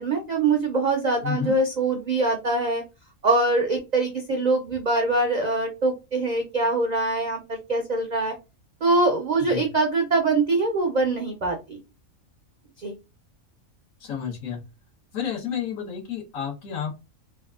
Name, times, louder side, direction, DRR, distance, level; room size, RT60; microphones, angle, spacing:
voice 1, 0.0-2.8 3.2-8.3 8.8-11.8 12.8-12.9, right 2 dB, 70° right, 3 dB, 0.4 m, -23 dB
voice 2, 1.2-1.6 9.4-9.6 14.0-14.6 15.1-16.9, left 8 dB, 80° left, 1 dB, 1.3 m, -30 dB
3.4 x 2.3 x 2.3 m, 0.27 s
omnidirectional pair, 1.4 m